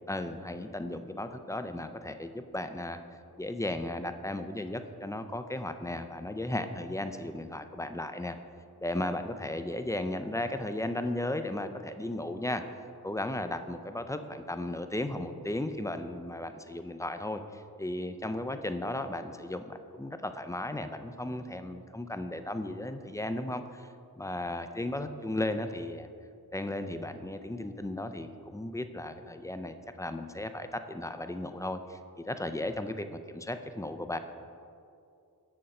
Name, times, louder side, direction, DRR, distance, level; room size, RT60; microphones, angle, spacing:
voice 1, 0.1-3.0 3.4-8.4 8.8-12.6 13.0-23.9 24.2-26.1 26.5-32.0 32.3-34.2, left 1 dB, 10° left, 8 dB, 0.3 m, -35 dB
7.9 x 6.4 x 4.2 m, 2.5 s
wide cardioid pair, 60°, 39 cm